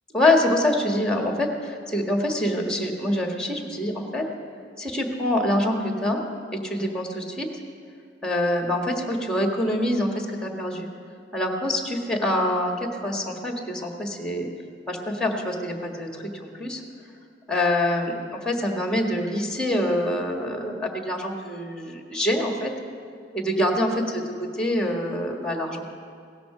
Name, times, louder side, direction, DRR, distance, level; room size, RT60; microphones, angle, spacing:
voice 1, 0.1-4.2 4.8-6.2 6.5-7.5 8.2-10.9 11.3-14.5 14.9-16.8 17.5-22.7 23.3-24.2 24.6-25.9, left 1 dB, 5° left, 2 dB, 1.5 m, -25 dB
17.0 x 13.0 x 4.9 m, 2.3 s
head